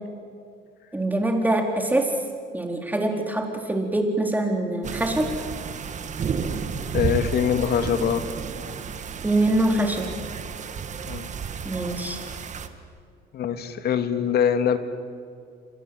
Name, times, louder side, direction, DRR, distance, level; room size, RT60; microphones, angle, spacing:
voice 1, 0.9-2.1 2.5-5.3 9.2-10.1 11.6-12.2, right 1 dB, 10° right, 2 dB, 4.1 m, -24 dB
sound 1, 4.8-12.7, right 6 dB, 40° right, 1.9 m, -32 dB
voice 2, 6.9-8.3 11.1-11.3 13.3-14.8, left 8 dB, 60° left, 8 dB, 2.3 m, -23 dB
29.5 x 24.5 x 7.9 m, 2.2 s
cardioid pair, 105°, 19 cm